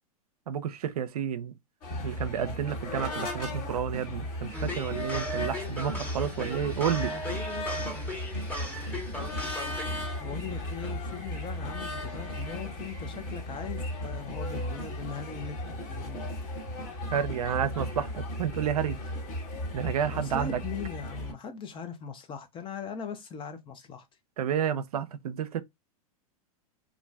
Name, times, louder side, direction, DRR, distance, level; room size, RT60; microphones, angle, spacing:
voice 1, 0.5-1.5 2.0-7.2 17.1-19.0 19.7-20.6 24.4-25.6, right 8 dB, 80° right, 0.5 m, -30 dB
sound 1, 1.8-21.3, left 1 dB, 45° left, 1.3 m, -35 dB
sound 2, 4.5-9.8, left 1 dB, 10° left, 1.0 m, -38 dB
voice 2, 10.2-15.6 15.9-16.3 20.1-24.1, left 6 dB, 25° left, 0.6 m, -40 dB
3.1 x 2.5 x 2.3 m
hypercardioid pair, 110°, 19 cm